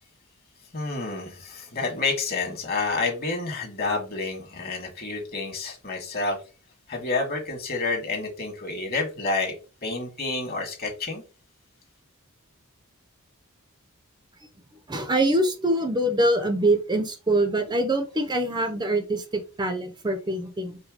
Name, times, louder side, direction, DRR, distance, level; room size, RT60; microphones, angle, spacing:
voice 1, 0.7-6.4 6.9-9.5 9.8-11.2, left 3 dB, 45° left, 1 dB, 1.8 m, -29 dB
voice 2, 14.9-20.8, right 1 dB, 20° right, 5 dB, 0.6 m, -24 dB
5.0 x 2.2 x 4.9 m, 0.32 s
head